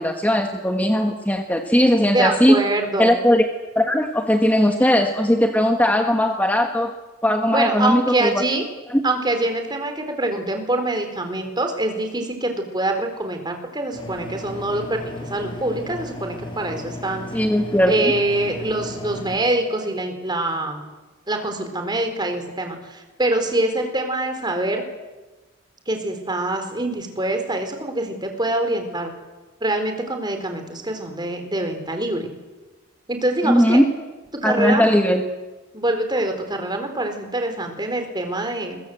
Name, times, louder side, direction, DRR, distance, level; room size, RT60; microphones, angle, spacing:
voice 1, 0.0-2.6 3.0-3.5 3.7-6.9 7.2-8.3 8.9-9.0 17.3-18.1 33.4-33.9 34.4-35.2, equal, 10° left, 4 dB, 1.6 m, -18 dB
voice 2, 2.1-3.2 7.5-8.6 9.0-17.3 17.9-20.8 21.3-24.8 25.9-29.1 29.6-32.3 33.1-33.8 34.3-34.8 35.7-38.8, right 2 dB, 20° right, 5 dB, 4.1 m, -24 dB
sound 1, 13.9-19.4, left 2 dB, 25° left, 5.6 m, -35 dB
29.5 x 23.0 x 7.9 m, 1.2 s
head